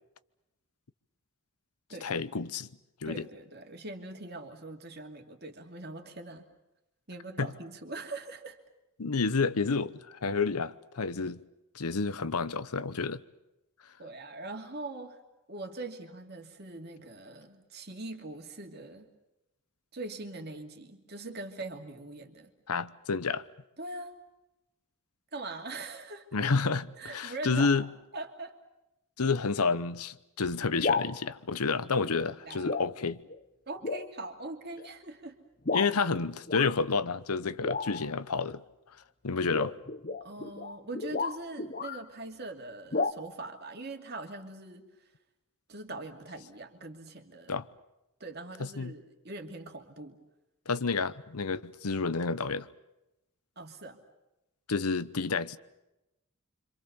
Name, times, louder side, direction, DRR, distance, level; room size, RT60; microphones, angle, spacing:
voice 1, 2.0-2.7 3.0-3.3 7.4-7.5 9.0-11.4 11.7-13.2 22.7-23.4 26.3-27.9 29.2-33.2 35.7-38.6 39.2-39.7 47.5-47.6 48.6-48.9 50.7-52.7 54.7-55.6, left 4 dB, 90° left, 0.9 m, -30 dB
voice 2, 3.1-6.5 7.1-8.6 14.0-15.2 15.5-19.1 19.9-22.5 23.8-24.2 25.3-26.2 27.0-27.9 28.1-28.5 32.5-32.8 33.7-35.4 40.2-44.9 45.7-47.5 48.2-50.2 53.6-54.0, right 2 dB, 45° right, 2.7 m, -42 dB
sound 1, 30.8-31.1 32.1-32.3 32.6-32.9 33.3-33.4 33.8-34.1 34.8-34.9 35.7-36.0 36.5-36.8 37.6-38.1 39.4-42.1 42.9-43.1, left 4 dB, 40° left, 0.9 m, -32 dB
27.0 x 26.0 x 7.0 m
head